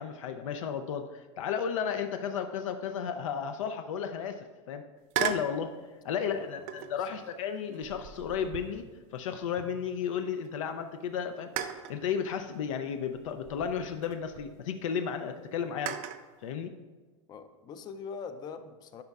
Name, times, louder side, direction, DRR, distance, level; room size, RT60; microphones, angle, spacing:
voice 1, 0.0-4.8 5.2-5.7 6.0-8.8 9.1-11.5 11.9-16.0 16.4-16.7, left 7 dB, 80° left, 7 dB, 0.5 m, -33 dB
Coke can sounds, 5.1-5.6 6.7-7.1 7.7-10.1 10.4-10.5 11.6-12.0 13.1-14.5 15.9-16.3, right 9 dB, 45° right, 0.5 m, -37 dB
voice 2, 6.2-6.7 7.0-7.2 17.3-19.0, left 5 dB, 25° left, 10 dB, 0.4 m, -43 dB
10.5 x 5.4 x 2.3 m, 1.3 s
supercardioid pair, 135°, 16 cm